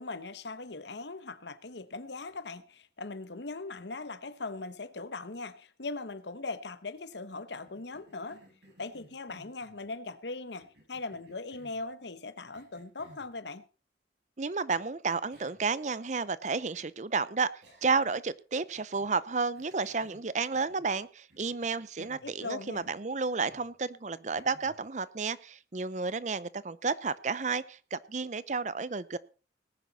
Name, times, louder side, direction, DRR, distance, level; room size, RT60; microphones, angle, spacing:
voice 1, 0.0-8.4 8.8-13.6 22.0-22.9, left 3 dB, 80° left, 1.1 m, -40 dB
Cough, 7.6-9.8 10.6-11.9 12.5-13.3 14.7-14.8 15.3-15.7 16.0-16.1 17.6-18.2 18.7-19.1 19.5-21.0 21.3-22.4 22.7-23.0 23.4-23.7 24.3-24.8, equal, 75° right, 6.5 m, -59 dB
voice 2, 14.4-17.5 17.8-29.2, right 4 dB, 40° right, 0.6 m, -31 dB
19.0 x 10.5 x 4.1 m
head